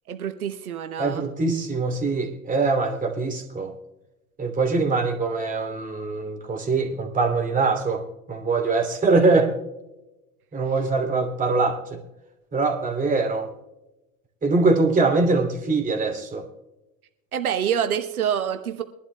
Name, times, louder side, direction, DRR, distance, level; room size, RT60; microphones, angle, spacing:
voice 1, 0.1-1.3 17.3-18.8, right 8 dB, 90° right, 8 dB, 1.0 m, -26 dB
voice 2, 1.0-3.7 4.4-8.0 8.3-9.5 10.5-12.0 12.5-13.5 14.4-16.4, right 3 dB, 20° right, 2 dB, 2.9 m, -23 dB
23.5 x 11.5 x 2.2 m, 1.0 s
hypercardioid pair, 95°, 42 cm